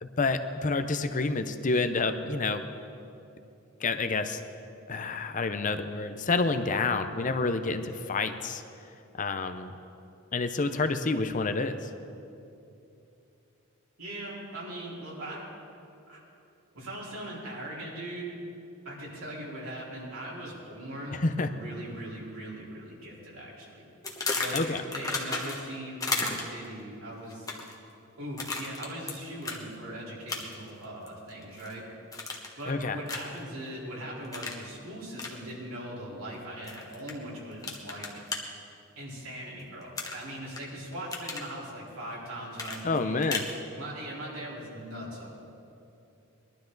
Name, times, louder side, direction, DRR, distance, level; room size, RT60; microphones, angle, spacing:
voice 1, 0.0-2.7 3.8-4.4 4.9-8.6 9.2-9.7 10.3-11.9 21.1-21.5 24.5-24.8 32.7-33.0 42.8-43.4, left 3 dB, 35° left, 8 dB, 0.6 m, -28 dB
voice 2, 14.0-15.4 16.1-16.2 16.7-18.3 18.8-23.8 24.3-27.5 28.2-31.8 32.6-38.1 39.0-43.3 43.8-45.3, right 1 dB, 75° right, -5 dB, 4.0 m, -40 dB
sound 1, 24.0-25.7 26.0-26.7 27.3-27.8 28.4-29.1 29.4-29.6 30.3-30.7 31.1-31.7 32.1-32.6 33.1-33.4 34.3-34.6 35.2-35.3 36.7-37.1 37.6-38.4 40.0-40.6 40.9-41.5 42.6-43.5, left 3 dB, 15° left, 1.2 m, -33 dB
21.0 x 12.0 x 3.9 m, 2.7 s
head